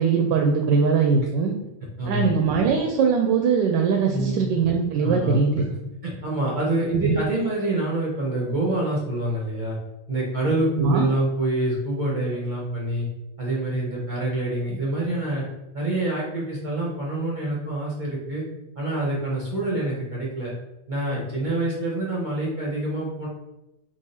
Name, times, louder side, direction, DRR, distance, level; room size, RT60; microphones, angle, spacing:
voice 1, 0.0-1.5 2.0-5.6 6.9-7.2 10.8-11.1, right 5 dB, 80° right, 3 dB, 1.2 m, -21 dB
voice 2, 2.0-2.3 4.1-4.4 5.0-5.4 6.0-9.8 10.1-13.1 13.4-15.4 15.7-18.4 18.8-20.5 20.9-23.3, right 1 dB, 35° right, -5 dB, 0.9 m, -26 dB
3.8 x 3.1 x 4.1 m, 0.93 s
omnidirectional pair, 1.9 m